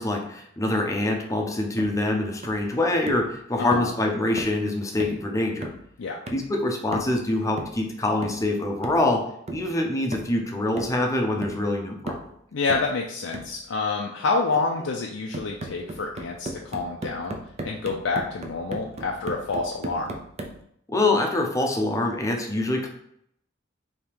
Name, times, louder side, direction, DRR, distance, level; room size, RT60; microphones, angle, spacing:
voice 1, 0.0-5.7 6.3-9.2 9.5-12.2 20.9-22.9, left 2 dB, 15° left, 1 dB, 0.6 m, -25 dB
sound 1, 1.8-2.0 2.4-2.7 3.1-3.3 3.7-4.0 4.4-4.6 5.0-5.2 5.6-5.9 6.3-6.5 6.9-7.2 7.6-7.8 8.2-8.5 8.8-9.1 9.5-9.7 10.1-10.4 10.8-11.1 11.4-11.7 12.1-12.3 12.7-13.0 13.3-13.6 15.3-20.6, right 2 dB, 35° right, 0.5 m, -37 dB
voice 2, 3.6-3.9 6.0-6.2 12.5-17.4 17.6-20.1, left 4 dB, 85° left, 0 dB, 0.5 m, -28 dB
3.4 x 2.8 x 4.4 m, 0.71 s
head